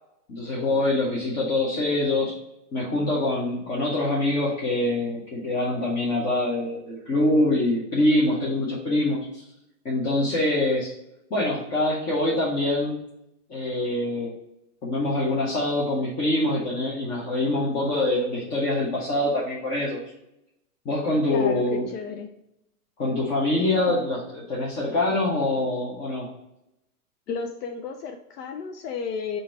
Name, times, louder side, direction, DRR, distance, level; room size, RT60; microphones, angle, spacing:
voice 1, 0.3-2.4 2.7-9.4 9.8-10.9 11.3-13.0 13.5-14.3 14.8-20.0 20.8-21.9 23.0-26.3, left 2 dB, 15° left, -5 dB, 0.5 m, -24 dB
voice 2, 21.3-22.3 23.9-24.0 27.3-29.4, left 5 dB, 85° left, 4 dB, 0.6 m, -32 dB
3.8 x 2.6 x 4.4 m, 0.83 s
hypercardioid pair, 140°, 45 cm